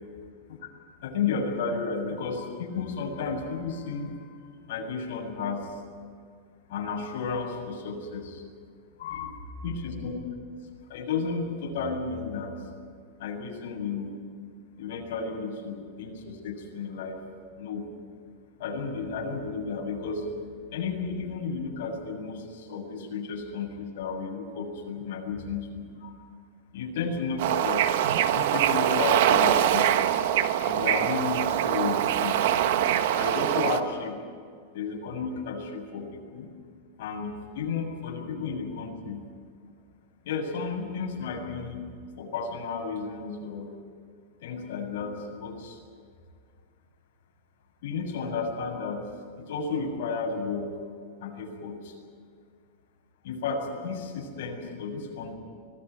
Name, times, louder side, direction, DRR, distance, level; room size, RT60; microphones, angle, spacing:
voice 1, 1.0-5.7 6.7-8.4 9.0-9.3 9.6-10.1 10.9-12.5 13.2-14.2 14.8-17.2 17.6-17.8 18.6-20.2 20.7-26.1 26.7-27.9 28.3-29.9 30.6-32.4 33.1-34.2 34.7-36.5 37.0-39.2 40.2-41.8 42.2-43.7 44.4-45.8 47.8-49.0 49.4-50.8 51.2-51.9 53.2-55.3, left 5 dB, 60° left, 0 dB, 7.5 m, -33 dB
Bird / Ocean, 27.4-33.8, right 11 dB, 60° right, 1.3 m, -24 dB
25.0 x 19.0 x 9.7 m, 2.1 s
supercardioid pair, 170°, 0 cm